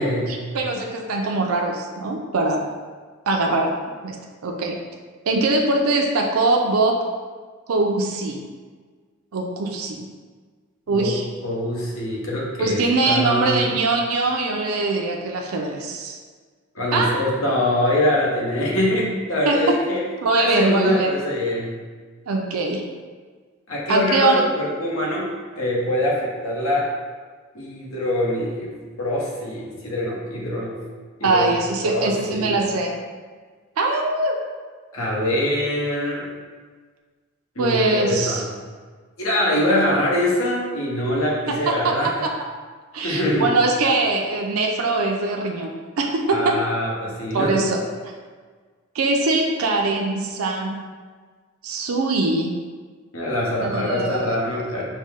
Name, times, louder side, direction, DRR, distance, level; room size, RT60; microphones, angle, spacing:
voice 1, 0.0-0.4 10.9-11.2 11.4-13.7 16.7-20.0 20.4-21.7 23.7-25.3 25.6-26.9 27.5-28.7 29.0-30.7 31.2-32.6 34.9-36.3 37.5-38.4 39.2-42.3 43.0-43.6 46.3-47.7 53.1-54.8, left 1 dB, 70° left, -4 dB, 1.1 m, -24 dB
voice 2, 0.5-2.6 3.3-3.7 4.0-4.2 4.4-4.8 5.2-7.0 7.7-8.4 9.3-10.0 10.9-11.2 12.6-16.2 16.9-17.2 19.5-19.7 20.2-21.1 22.3-22.8 23.9-24.4 31.2-33.0 33.8-34.4 37.6-38.4 41.5-41.9 42.2-42.3 42.9-46.5 47.3-47.8 48.9-50.8 51.6-52.5 53.6-54.3, right 3 dB, 90° right, 2 dB, 0.5 m, -22 dB
5.2 x 2.1 x 3.6 m, 1.5 s
head